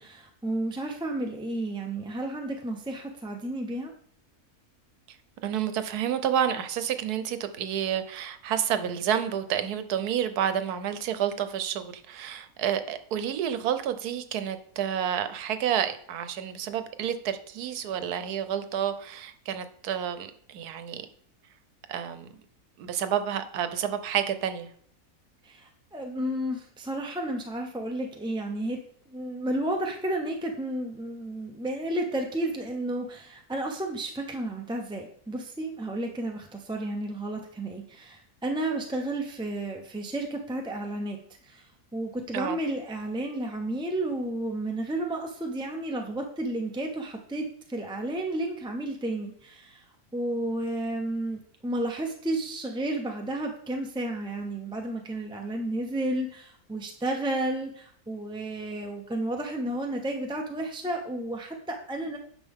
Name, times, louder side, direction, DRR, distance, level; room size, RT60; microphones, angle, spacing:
voice 1, 0.0-3.9 25.4-28.8 29.1-49.8 50.1-62.2, right 1 dB, 5° right, 0.5 m, -32 dB
voice 2, 5.4-21.1 21.9-22.3 22.8-24.7 42.3-42.6, right 9 dB, 80° right, 1.3 m, -29 dB
10.0 x 5.9 x 3.6 m
omnidirectional pair, 1.6 m